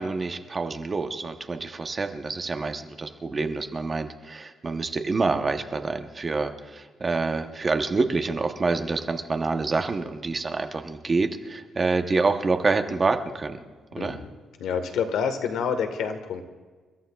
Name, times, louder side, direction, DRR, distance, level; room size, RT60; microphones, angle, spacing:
voice 1, 0.0-13.6 13.9-14.2, right 3 dB, 25° right, 6 dB, 0.9 m, -27 dB
voice 2, 14.0-14.3 14.6-16.4, left 6 dB, 90° left, 7 dB, 1.4 m, -28 dB
29.5 x 14.0 x 2.3 m, 1.4 s
cardioid pair, 150°, 0 cm